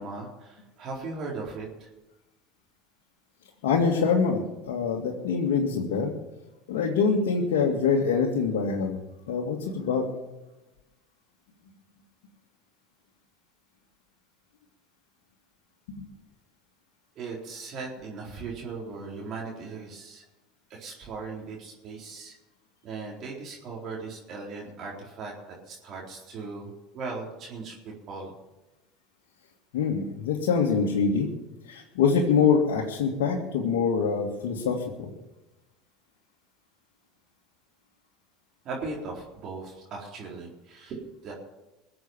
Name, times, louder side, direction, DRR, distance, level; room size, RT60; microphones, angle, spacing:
voice 1, 0.0-1.9 17.2-20.2 20.7-22.3 22.8-28.3 38.6-41.3, right 4 dB, 50° right, -3 dB, 4.0 m, -38 dB
voice 2, 3.6-6.1 6.7-9.0 9.3-10.1 29.7-31.3 31.7-35.1, left 5 dB, 75° left, -2 dB, 2.0 m, -24 dB
21.5 x 7.8 x 7.3 m, 1.0 s
hypercardioid pair, 80°, 0 cm